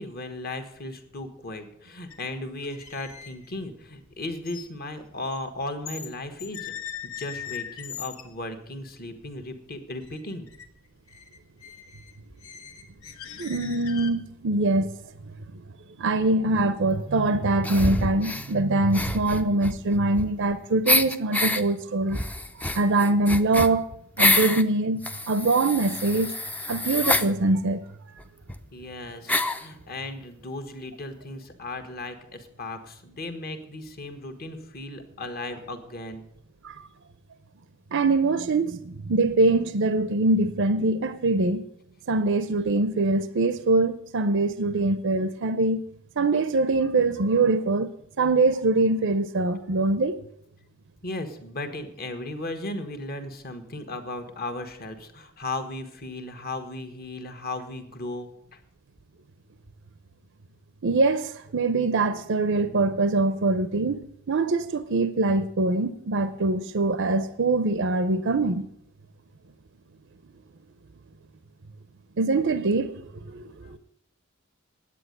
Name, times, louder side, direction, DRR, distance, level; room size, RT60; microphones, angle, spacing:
voice 1, 0.0-6.7 7.0-10.5 28.7-36.2 51.0-58.6 73.6-73.8, left 2 dB, 45° left, 1.4 m, -36 dB
sound 1, 2.1-2.3 2.6-6.1 6.4-8.3 8.9-9.0 9.4-9.7 10.0-10.7 10.9-14.3, left 9 dB, 85° left, 1.5 m, -41 dB
voice 2, 13.4-15.0 16.0-22.2 22.7-23.8 24.2-25.0 25.3-26.3 26.7-27.8 36.6-36.8 37.9-41.6 42.1-45.8 46.2-47.9 48.2-50.2 60.8-68.7 72.2-73.8, right 2 dB, 60° right, 0.6 m, -23 dB
sound 2, 17.6-18.5 18.9-20.5 20.9-21.6 22.1-24.6 25.0-27.3 28.2-28.3 28.5-28.6 29.3-29.7, left 1 dB, 5° left, 0.5 m, -26 dB
10.0 x 8.4 x 8.0 m
head